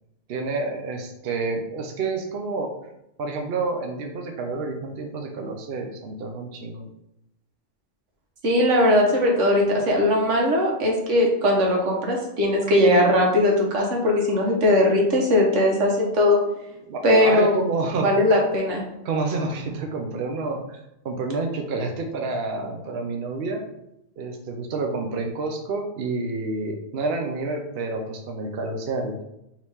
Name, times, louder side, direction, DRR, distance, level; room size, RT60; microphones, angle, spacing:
voice 1, 0.3-2.7 3.2-6.8 16.8-18.1 18.4-18.5 19.0-23.6 24.2-29.2, right 3 dB, 60° right, 3 dB, 0.8 m, -29 dB
voice 2, 8.4-16.4 17.0-17.6 18.0-18.8, left 1 dB, 90° right, -1 dB, 1.4 m, -19 dB
4.7 x 2.9 x 3.4 m, 0.85 s
omnidirectional pair, 1.2 m